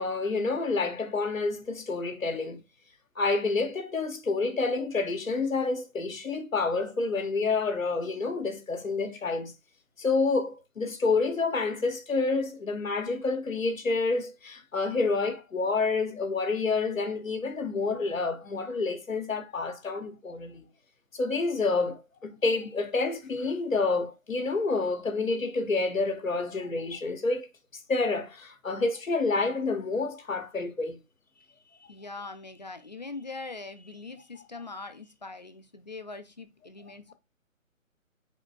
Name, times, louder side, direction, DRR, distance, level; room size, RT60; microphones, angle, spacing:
voice 1, 0.0-2.6 3.2-9.5 10.0-20.6 21.1-27.5 27.9-31.0, left 3 dB, 70° left, 1.2 m, -28 dB
voice 2, 31.4-37.1, left 3 dB, 35° left, 0.5 m, -42 dB
4.9 x 4.2 x 2.3 m
figure-of-eight pair, 145°, 41 cm